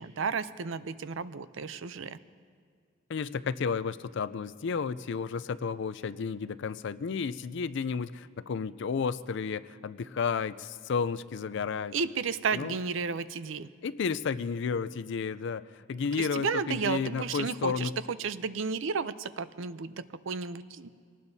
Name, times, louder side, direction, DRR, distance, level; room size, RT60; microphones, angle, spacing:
voice 1, 0.0-2.2 11.9-13.7 16.2-20.9, right 5 dB, 70° right, 14 dB, 0.5 m, -33 dB
voice 2, 3.1-11.9 12.5-12.7 13.8-17.9, left 5 dB, 60° left, 15 dB, 0.4 m, -32 dB
24.5 x 18.5 x 2.7 m, 2.1 s
head